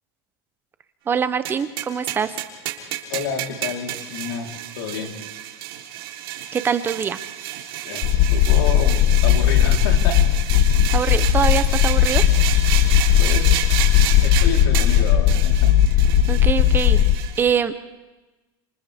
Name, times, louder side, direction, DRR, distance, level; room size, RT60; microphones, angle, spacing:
voice 1, 1.1-2.4 6.5-7.2 10.9-12.2 16.3-17.1 17.4-17.7, right 7 dB, 20° right, 12 dB, 0.7 m, -23 dB
sound 1, 1.4-17.4, right 12 dB, 85° right, 3.5 m, -30 dB
voice 2, 3.1-5.3 7.8-10.2 10.8-10.9 13.2-13.6 14.0-15.7, left 6 dB, 85° left, 1 dB, 3.8 m, -30 dB
sound 2, 8.0-17.2, left 10 dB, 45° left, 0.9 m, -17 dB
30.0 x 27.0 x 3.5 m, 1.2 s
supercardioid pair, 160°, 12 cm